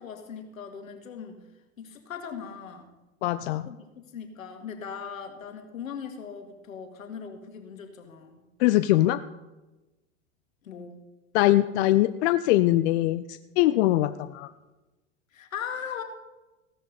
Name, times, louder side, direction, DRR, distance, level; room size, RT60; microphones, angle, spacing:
voice 1, 0.0-1.4 1.8-2.9 3.7-8.4 10.6-11.0 13.7-14.0 15.3-16.0, left 7 dB, 80° left, 5 dB, 2.2 m, -39 dB
voice 2, 3.2-3.7 8.6-9.2 11.3-14.5, left 15 dB, 55° left, 12 dB, 0.6 m, -22 dB
16.5 x 13.0 x 4.1 m, 1.1 s
hypercardioid pair, 90°, 40 cm